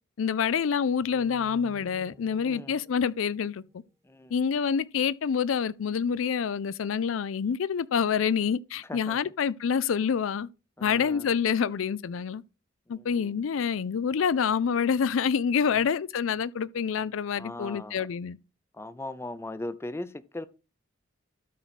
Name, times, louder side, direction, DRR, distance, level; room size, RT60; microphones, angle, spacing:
voice 1, 0.2-3.6 4.3-10.5 10.8-12.4 12.9-18.4, left 6 dB, 80° left, 0.4 m, -27 dB
sound 1, 1.0-4.5, right 1 dB, 15° right, 1.0 m, -53 dB
voice 2, 2.4-2.8 4.0-4.4 8.8-9.2 10.8-11.3 12.9-13.4 15.7-15.8 17.4-18.1 18.7-20.5, left 2 dB, 15° left, 0.5 m, -39 dB
12.5 x 4.6 x 4.2 m
head